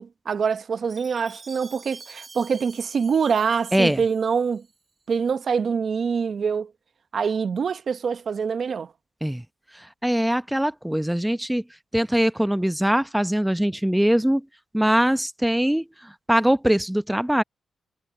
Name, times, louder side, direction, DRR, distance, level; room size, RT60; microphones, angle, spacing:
voice 1, 0.0-4.6 5.1-6.7 7.1-8.9, right 6 dB, 60° right, 0.9 m, -25 dB
Chime, 0.9-5.0, right 4 dB, 35° right, 7.6 m, -47 dB
voice 2, 3.7-4.0 9.2-9.4 9.8-11.6 11.9-14.4 14.7-17.4, equal, 5° right, 0.7 m, -22 dB
cardioid pair, 75°, 0 cm